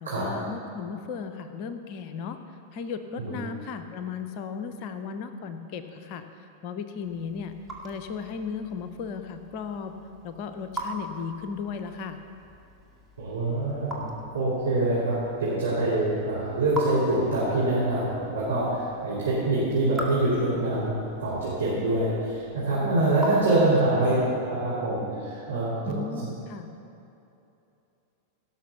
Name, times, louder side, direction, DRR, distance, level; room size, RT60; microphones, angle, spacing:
voice 1, 0.0-2.4 2.7-7.5 7.8-9.9 10.2-12.2 23.4-23.7 25.8-26.7, left 6 dB, 45° left, 8 dB, 0.6 m, -35 dB
Raindrop / Drip, 6.9-24.1, right 1 dB, 5° right, 1.9 m, -42 dB
voice 2, 13.2-20.9 21.2-26.0, right 2 dB, 75° right, -10 dB, 3.1 m, -25 dB
17.0 x 6.1 x 5.8 m, 2.8 s
figure-of-eight pair, 90°, 0 cm